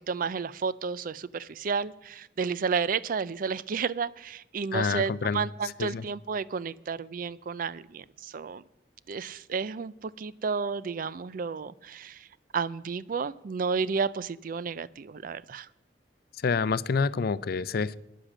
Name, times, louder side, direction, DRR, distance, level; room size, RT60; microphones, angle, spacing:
voice 1, 0.0-8.6 9.1-12.3 12.5-15.7, right 5 dB, 50° right, 19 dB, 0.4 m, -32 dB
voice 2, 4.7-5.5 5.8-6.0 16.4-18.0, left 5 dB, 60° left, 18 dB, 0.4 m, -27 dB
10.0 x 9.9 x 7.3 m, 0.85 s
head